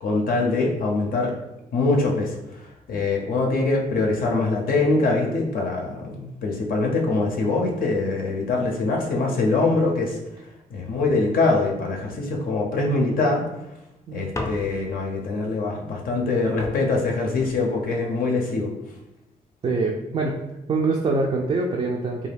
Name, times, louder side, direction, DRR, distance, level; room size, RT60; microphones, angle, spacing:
voice 1, 0.0-1.3 1.7-2.3 2.9-10.2 10.7-13.4 14.1-18.7, left 3 dB, 70° left, 0 dB, 0.5 m, -23 dB
sound 1, 14.3-15.1 16.2-16.3 16.6-18.1 18.8-19.2, left 2 dB, 20° left, 0.5 m, -35 dB
voice 2, 19.6-20.4 20.7-22.3, right 3 dB, 40° right, -1 dB, 0.4 m, -24 dB
2.3 x 2.3 x 3.3 m, 0.91 s
cardioid pair, 70°, 15 cm